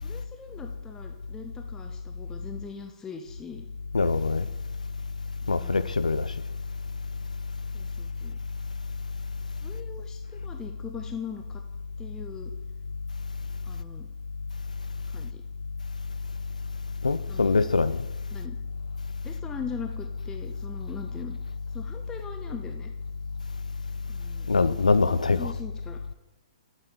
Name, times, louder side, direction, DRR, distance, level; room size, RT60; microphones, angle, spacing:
voice 1, 0.0-3.7 5.4-5.8 7.7-8.4 9.6-11.6 12.0-12.5 13.6-14.1 15.1-15.4 17.3-17.6 18.3-18.5 19.2-21.4 21.7-22.9 24.1-24.9 25.3-26.0, left 6 dB, 15° left, 0.7 m, -41 dB
voice 2, 3.9-4.5 5.5-6.3 17.0-18.0 24.5-25.5, left 4 dB, 85° left, 0.5 m, -23 dB
9.0 x 8.3 x 5.1 m
figure-of-eight pair, 120°, 4 cm